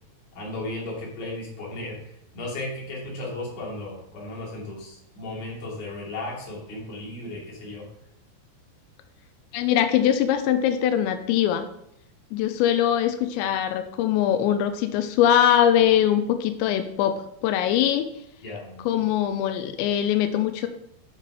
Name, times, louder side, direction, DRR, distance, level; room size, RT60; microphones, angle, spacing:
voice 1, 0.4-2.0 2.3-7.8 18.4-19.0, left 2 dB, 50° left, -5 dB, 3.7 m, -35 dB
voice 2, 9.5-11.6 12.3-17.2 17.4-18.1 18.8-20.7, left 10 dB, 90° left, 8 dB, 2.9 m, -22 dB
9.0 x 5.8 x 4.8 m, 0.77 s
omnidirectional pair, 5.1 m